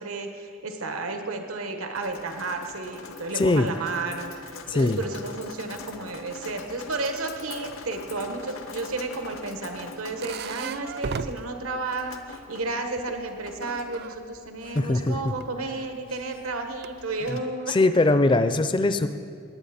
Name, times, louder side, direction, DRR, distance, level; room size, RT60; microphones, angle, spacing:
voice 1, 0.0-17.7, right 3 dB, 90° right, 5 dB, 1.2 m, -32 dB
Drip, 1.9-17.4, left 4 dB, 75° left, 0.8 m, -44 dB
voice 2, 3.4-3.7 4.7-5.0 14.8-15.3 17.3-17.4 17.7-19.1, left 2 dB, 25° left, 11 dB, 0.4 m, -21 dB
sound 1, 8.8-12.6 12.9-14.2 15.4-15.5 16.6-16.9 17.5-18.4, right 5 dB, 50° right, 0.3 m, -37 dB
18.5 x 8.5 x 4.2 m, 2.2 s
head